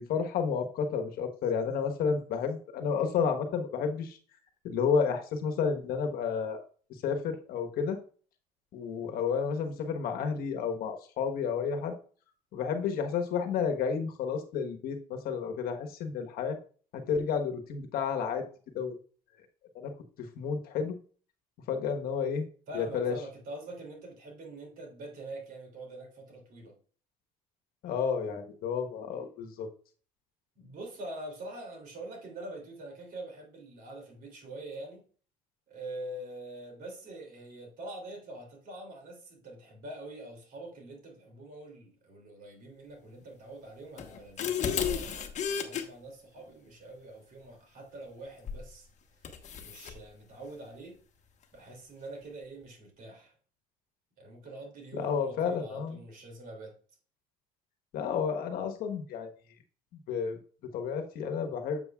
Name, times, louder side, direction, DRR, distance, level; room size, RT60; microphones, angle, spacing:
voice 1, 0.0-4.2 4.6-6.6 7.0-8.0 8.7-11.9 12.5-16.6 16.9-18.4 18.7-18.9 19.7-19.9 20.3-21.0 21.7-22.5 22.7-23.2 27.8-29.7 54.9-56.0 57.9-59.3 60.1-60.4 60.7-61.8, left 6 dB, 65° left, 1.2 m, -31 dB
voice 2, 22.7-26.7 30.5-35.0 35.7-48.9 49.6-51.0 51.5-53.3 54.2-56.7, right 1 dB, 60° right, 3.1 m, -45 dB
sound 1, 44.0-45.8 48.5-48.7 49.2-50.0, left 7 dB, 45° left, 1.1 m, -33 dB
7.8 x 7.1 x 2.3 m
supercardioid pair, 90°, 16 cm